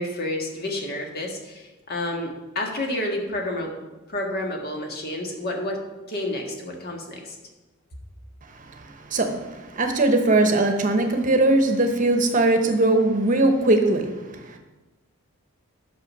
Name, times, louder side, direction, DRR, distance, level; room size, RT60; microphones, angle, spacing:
voice 1, 0.0-3.7 4.1-5.8 6.1-7.4, left 1 dB, 45° left, 1 dB, 1.6 m, -30 dB
voice 2, 8.5-14.6, right 2 dB, 35° right, 5 dB, 1.0 m, -21 dB
8.9 x 6.0 x 6.2 m, 1.1 s
head